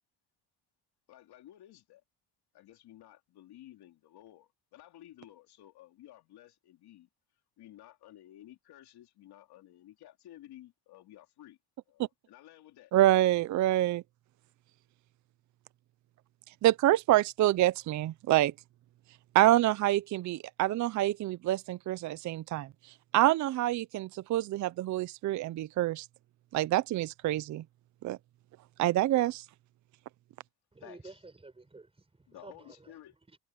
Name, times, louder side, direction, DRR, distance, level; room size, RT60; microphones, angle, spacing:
voice 1, 1.1-2.0 2.5-7.1 7.6-11.6 11.9-13.1 30.8-31.2 32.3-33.1, left 13 dB, 70° left, 3.4 m, -54 dB
voice 2, 12.9-14.0 16.6-18.5 19.3-22.7 23.1-26.1 26.5-27.6 28.0-28.2 28.8-29.4, right 15 dB, 50° right, 0.5 m, -26 dB
voice 3, 30.7-32.9 33.3-33.4, right 3 dB, 15° right, 4.6 m, -51 dB
cardioid pair, 135°, 40 cm